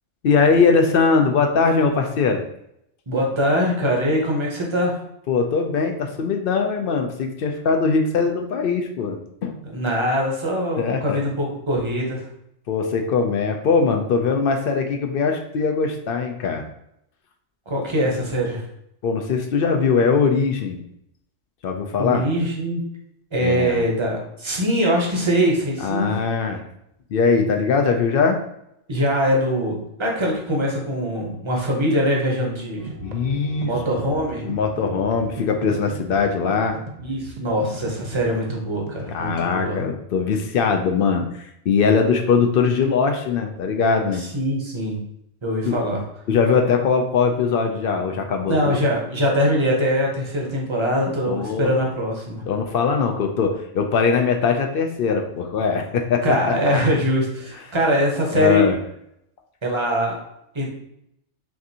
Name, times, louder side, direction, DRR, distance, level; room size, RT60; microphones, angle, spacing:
voice 1, 0.2-2.4 5.3-9.6 10.8-11.2 12.7-16.6 19.0-20.8 21.6-22.3 23.4-23.8 25.8-26.6 27.1-28.4 33.0-33.7 34.4-36.8 39.1-44.2 45.7-45.8 46.3-48.8 51.3-51.7 52.5-56.9 58.3-58.8, left 5 dB, 60° left, 4 dB, 0.6 m, -21 dB
voice 2, 3.1-5.0 9.6-12.2 17.7-18.6 22.0-22.8 23.3-26.1 28.9-32.9 33.6-34.4 37.0-39.8 44.2-45.0 45.4-46.0 48.4-52.4 56.2-58.7 59.6-60.2 60.5-60.7, equal, 25° right, -1 dB, 0.8 m, -22 dB
sound 1, 32.8-39.3, right 3 dB, 60° right, 0.4 m, -37 dB
5.9 x 2.5 x 2.8 m, 0.77 s
omnidirectional pair, 1.3 m